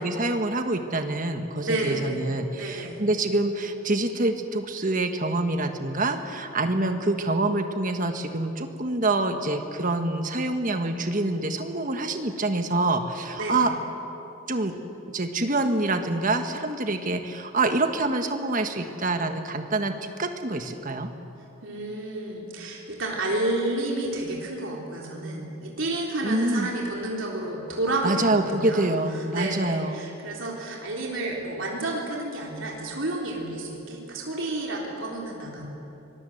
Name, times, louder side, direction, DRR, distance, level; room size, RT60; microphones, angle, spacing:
voice 1, 0.0-13.7 14.5-14.7 15.1-21.1 26.2-26.7 28.0-30.1, right 2 dB, 40° right, 6 dB, 1.5 m, -26 dB
voice 2, 1.6-2.2 2.5-3.0 13.4-13.7 21.6-28.9 29.3-35.7, right 2 dB, 60° right, -2 dB, 3.7 m, -30 dB
24.5 x 20.0 x 7.9 m, 3.0 s
head